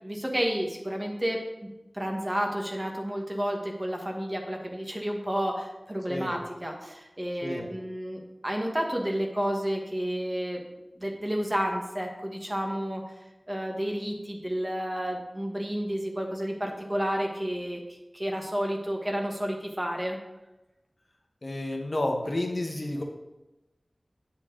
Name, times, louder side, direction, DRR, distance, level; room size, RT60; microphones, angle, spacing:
voice 1, 0.0-1.4 1.9-10.6 11.0-13.0 13.5-20.2, equal, 25° right, 1 dB, 1.2 m, -31 dB
voice 2, 21.4-23.0, left 1 dB, 55° left, 2 dB, 1.0 m, -30 dB
8.7 x 4.4 x 3.8 m, 1.0 s
wide cardioid pair, 45°, 0 cm